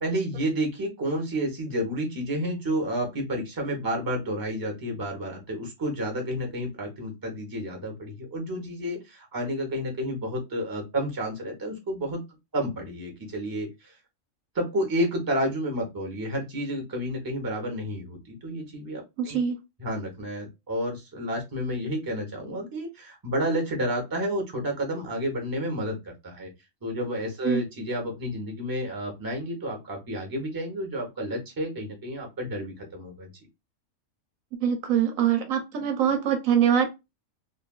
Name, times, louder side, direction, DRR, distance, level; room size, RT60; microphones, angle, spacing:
voice 1, 0.0-12.2 12.5-14.0 14.5-19.4 19.8-26.5 26.8-33.3, equal, 20° right, 0.7 m, -30 dB
voice 2, 19.2-19.6 27.4-27.6 34.6-36.9, right 8 dB, 85° right, 1.1 m, -23 dB
3.2 x 2.4 x 2.2 m
omnidirectional pair, 1.4 m